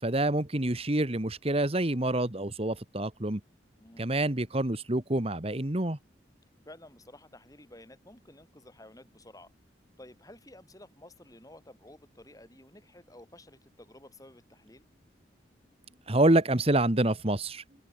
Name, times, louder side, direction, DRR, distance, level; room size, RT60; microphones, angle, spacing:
voice 1, 0.0-3.4 4.0-6.0 16.1-17.6, right 1 dB, 35° right, 1.6 m, -27 dB
voice 2, 6.7-9.5 10.0-14.9, left 1 dB, 20° left, 5.3 m, -52 dB
head